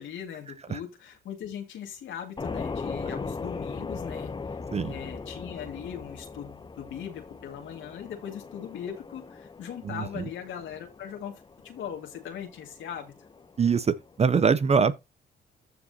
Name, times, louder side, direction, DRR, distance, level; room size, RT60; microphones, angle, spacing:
voice 1, 0.0-4.3 4.8-13.1, left 8 dB, 75° left, 2.0 m, -39 dB
sound 1, 2.4-14.3, left 4 dB, 25° left, 0.7 m, -39 dB
voice 2, 9.8-10.2 13.6-14.9, right 5 dB, 35° right, 0.5 m, -23 dB
14.5 x 4.8 x 2.8 m
cardioid pair, 90°, 20 cm